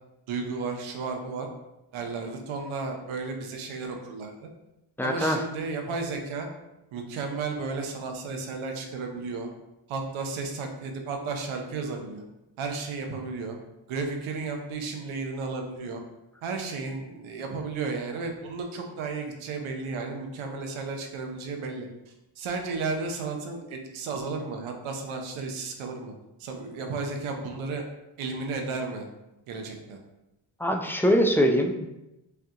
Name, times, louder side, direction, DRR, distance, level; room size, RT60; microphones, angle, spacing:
voice 1, 0.3-1.5 1.9-4.5 5.0-6.5 6.9-9.5 9.9-12.2 12.6-13.6 13.9-16.0 16.4-21.9 22.4-26.1 26.4-27.8 28.2-29.1 29.5-30.0, right 4 dB, 85° right, 3 dB, 0.8 m, -33 dB
voice 2, 5.0-5.4 30.6-31.9, equal, 5° left, 3 dB, 0.3 m, -23 dB
5.5 x 2.3 x 2.8 m, 0.94 s
cardioid pair, 75°, 47 cm